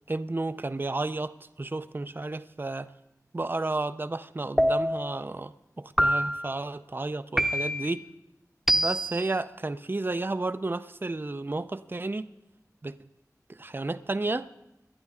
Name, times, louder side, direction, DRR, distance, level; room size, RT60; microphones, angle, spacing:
voice 1, 0.1-2.9 3.3-8.1 8.7-12.3 12.8-13.1 13.5-14.5, right 2 dB, 35° right, 13 dB, 0.5 m, -32 dB
sound 1, 4.6-5.2 6.0-6.6 7.4-7.9 8.7-9.2, equal, 5° right, 0.8 m, -25 dB
18.5 x 12.0 x 3.6 m, 0.92 s
wide cardioid pair, 60°, 6 cm